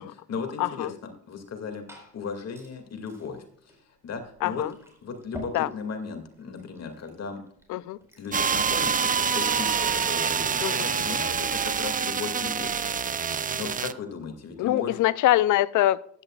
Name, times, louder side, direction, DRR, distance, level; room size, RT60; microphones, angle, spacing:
voice 1, 0.0-1.9 2.1-3.4 4.0-4.7 5.0-7.4 8.2-12.8 13.5-15.0, left 5 dB, 55° left, 2.3 m, -36 dB
voice 2, 0.6-0.9 4.4-4.7 5.5-5.7 7.7-8.0 10.6-10.9 14.6-16.0, left 14 dB, 80° left, 0.6 m, -23 dB
Glass / Fill (with liquid), 1.4-8.5, equal, 10° right, 4.4 m, -50 dB
sound 1, 8.3-13.9, right 6 dB, 25° right, 0.5 m, -26 dB
15.0 x 11.0 x 2.4 m
cardioid pair, 90°, 30 cm